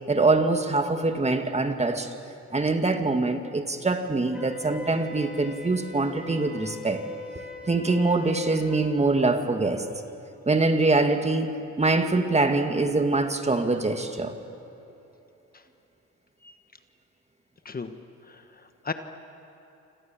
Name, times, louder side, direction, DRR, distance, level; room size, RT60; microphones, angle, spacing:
voice 1, 0.1-2.1 2.5-7.0 7.7-9.9 10.5-14.4, right 3 dB, 20° right, 6 dB, 2.0 m, -24 dB
Wind instrument woodwind instrument, 4.3-8.9, left 1 dB, 5° right, 3.8 m, -40 dB
voice 2, 18.3-18.9, left 4 dB, 30° left, 8 dB, 1.4 m, -36 dB
28.0 x 26.5 x 7.3 m, 2.9 s
cardioid pair, 90°, 30 cm